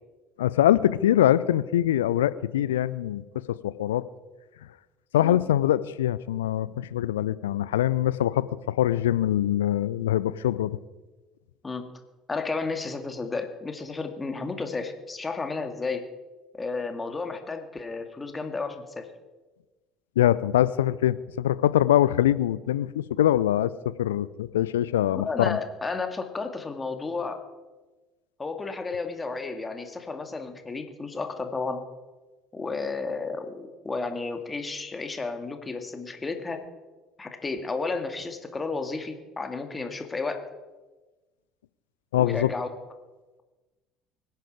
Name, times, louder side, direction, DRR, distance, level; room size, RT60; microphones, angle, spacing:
voice 1, 0.4-3.2 3.5-4.0 5.1-10.8 20.2-23.7 24.0-25.6 42.1-42.5, left 12 dB, 70° left, 18 dB, 0.5 m, -23 dB
voice 2, 12.3-16.0 16.5-19.1 25.1-27.4 28.4-31.8 32.5-36.6 37.2-40.4 42.1-42.7, left 4 dB, 20° left, 6 dB, 2.3 m, -32 dB
24.5 x 10.5 x 4.9 m, 1.2 s
figure-of-eight pair, 60°, 0 cm